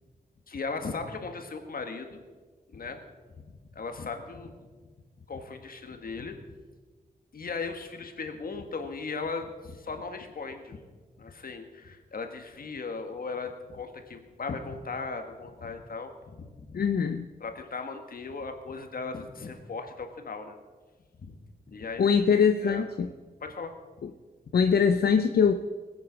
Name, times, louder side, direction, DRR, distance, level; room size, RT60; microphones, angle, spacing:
voice 1, 0.5-2.2 2.7-3.0 3.4-4.6 5.3-6.6 7.3-10.8 11.2-16.1 16.4-16.9 17.4-20.6 21.2-21.3 21.7-22.1 22.6-22.8 23.4-23.7, left 4 dB, 70° left, 6 dB, 1.7 m, -37 dB
voice 2, 16.7-17.2 22.0-23.1 24.0-24.1 24.5-25.5, left 6 dB, 85° left, 8 dB, 0.6 m, -22 dB
20.5 x 9.2 x 5.1 m, 1.4 s
wide cardioid pair, 120°, 16 cm